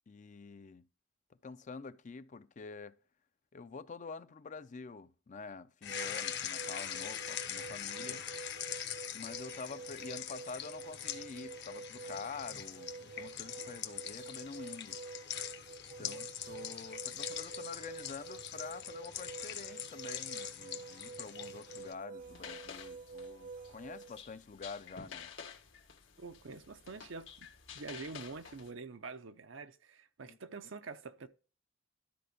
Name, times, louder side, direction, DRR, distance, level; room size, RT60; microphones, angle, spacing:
voice 1, 0.1-0.9 1.4-3.0 3.5-8.3 9.1-15.0 16.0-25.3 30.3-30.4, left 4 dB, 40° left, 0.5 m, -47 dB
sound 1, 5.8-21.9, left 10 dB, 60° left, 1.0 m, -43 dB
sound 2, 5.9-24.2, right 4 dB, 45° right, 0.3 m, -48 dB
sound 3, 22.2-28.7, left 6 dB, 75° left, 1.5 m, -51 dB
voice 2, 26.2-27.5 27.7-31.3, right 4 dB, 75° right, 0.7 m, -46 dB
12.5 x 4.3 x 5.1 m
head